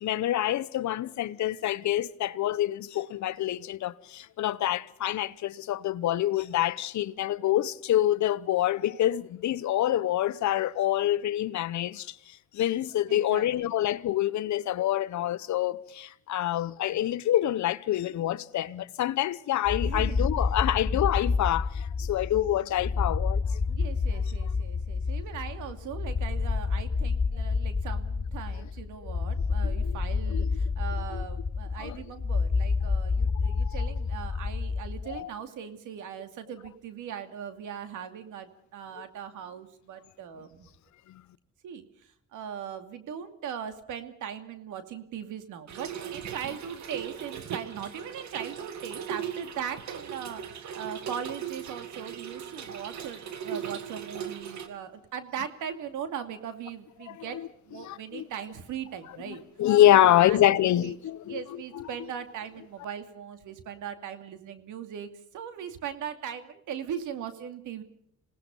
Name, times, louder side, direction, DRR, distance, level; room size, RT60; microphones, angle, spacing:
voice 1, 0.0-12.1 12.5-23.6 29.6-30.0 30.3-30.5 31.1-31.2 31.8-32.0 33.6-33.8 35.2-35.3 57.8-58.2 59.3-61.4 61.7-61.8, left 13 dB, 70° left, 1.0 m, -26 dB
voice 2, 13.1-13.7 19.8-20.5 23.7-40.7 41.6-59.4 60.0-60.9 61.3-67.8, right 8 dB, 85° right, 2.6 m, -39 dB
sound 1, 19.7-35.2, left 4 dB, 25° left, 0.9 m, -29 dB
Trickle dribble / Fill (with liquid), 45.7-54.7, right 8 dB, 65° right, 2.4 m, -38 dB
27.0 x 18.5 x 5.5 m
cardioid pair, 90°, 30 cm